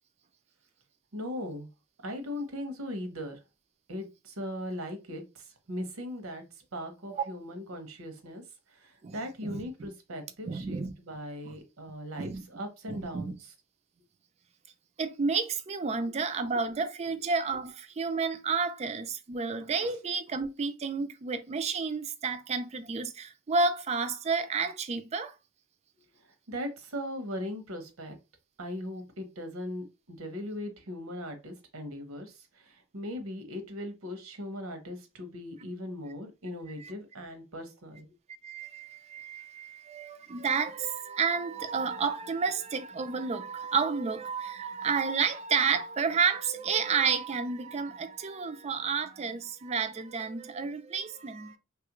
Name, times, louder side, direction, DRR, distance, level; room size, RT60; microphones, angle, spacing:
voice 1, 1.1-1.7 2.0-3.4 3.9-6.4 6.7-8.4 8.7-13.5 26.2-28.2 28.6-38.1, left 1 dB, 85° right, 0.9 m, -39 dB
voice 2, 9.4-9.9 10.4-10.9 11.5-11.6 12.2-12.5 12.9-13.3 15.0-25.3 36.8-36.9 38.4-51.6, right 5 dB, 30° right, 0.4 m, -31 dB
3.1 x 2.4 x 2.9 m
head